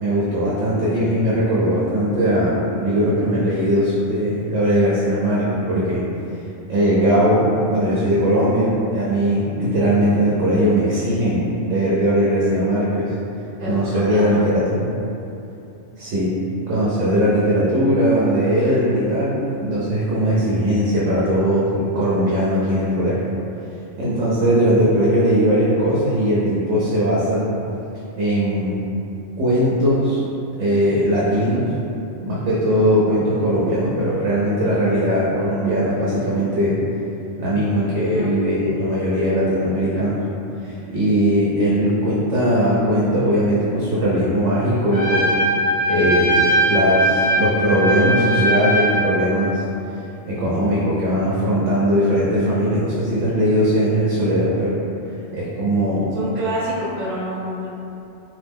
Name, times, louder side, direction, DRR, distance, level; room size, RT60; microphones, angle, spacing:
voice 1, 0.0-6.0 6.7-13.1 13.7-14.8 16.0-16.3 16.7-23.2 24.0-27.5 28.2-28.8 29.4-30.2 30.6-31.7 32.2-36.7 37.4-40.2 40.6-45.4 45.9-49.6 50.3-54.7 55.3-56.1, equal, 75° right, -8 dB, 0.9 m, -19 dB
voice 2, 13.6-14.5 38.1-38.4 56.1-57.7, right 1 dB, 50° right, -14 dB, 0.8 m, -27 dB
Trumpet, 44.9-49.2, equal, 65° left, 1.3 m, -20 dB
2.8 x 2.0 x 3.4 m, 2.8 s
omnidirectional pair, 1.3 m